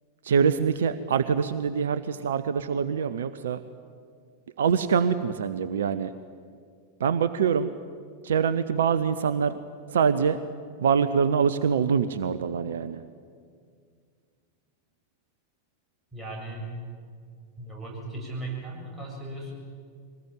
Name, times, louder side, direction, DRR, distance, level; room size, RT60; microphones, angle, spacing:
voice 1, 0.2-3.6 4.6-6.1 7.0-7.7 8.2-9.6 9.9-10.4 10.8-13.0, right 6 dB, 60° right, 13 dB, 0.7 m, -24 dB
voice 2, 16.1-16.7 17.6-19.5, right 2 dB, 5° right, -3 dB, 7.3 m, -37 dB
23.0 x 19.0 x 9.0 m, 2.1 s
figure-of-eight pair, 90°, 0 cm